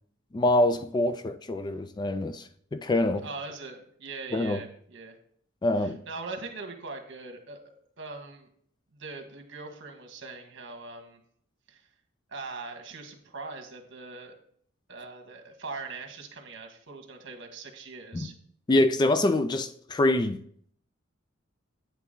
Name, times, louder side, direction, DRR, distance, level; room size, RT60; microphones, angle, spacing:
voice 1, 0.3-3.2 4.3-4.6 5.6-6.0 18.1-18.3 18.7-20.4, left 1 dB, 20° left, 0.3 m, -25 dB
voice 2, 3.2-5.2 6.1-7.6 8.0-8.5 8.9-11.2 11.7-11.8 12.3-14.3 14.9-18.3, right 3 dB, 65° right, 1.5 m, -41 dB
9.2 x 6.0 x 3.8 m
head